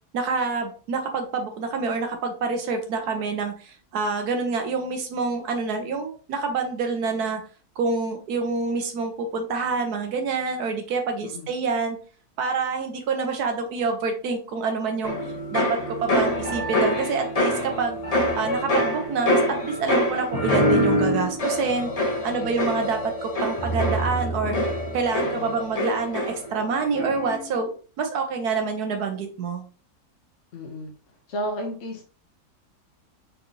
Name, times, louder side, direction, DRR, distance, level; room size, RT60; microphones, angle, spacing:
voice 1, 0.1-7.4 7.8-12.0 12.4-15.2 15.5-18.0 18.4-29.6, right 4 dB, 80° right, 5 dB, 1.4 m, -27 dB
sound 1, 15.0-26.6 26.9-27.4, equal, 30° left, 1.0 m, -25 dB
voice 2, 25.2-25.5 30.5-30.9 31.3-32.1, equal, 55° left, -1 dB, 1.1 m, -33 dB
4.1 x 4.0 x 2.8 m, 0.39 s
omnidirectional pair, 1.6 m